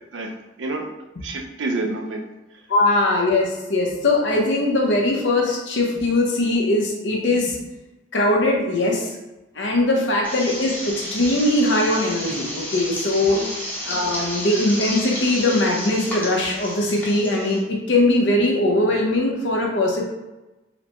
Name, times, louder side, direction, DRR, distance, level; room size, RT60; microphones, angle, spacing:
voice 1, 0.1-0.9 1.2-2.3 10.1-10.2 13.3-13.5 14.2-14.3, right 2 dB, 75° right, 4 dB, 0.5 m, -29 dB
voice 2, 2.7-7.6 8.1-9.1 9.6-13.4 13.8-20.0, left 2 dB, 75° left, -1 dB, 0.8 m, -20 dB
sound 1, 10.2-17.6, equal, 10° left, 0.8 m, -31 dB
4.0 x 2.1 x 3.0 m, 1.1 s
head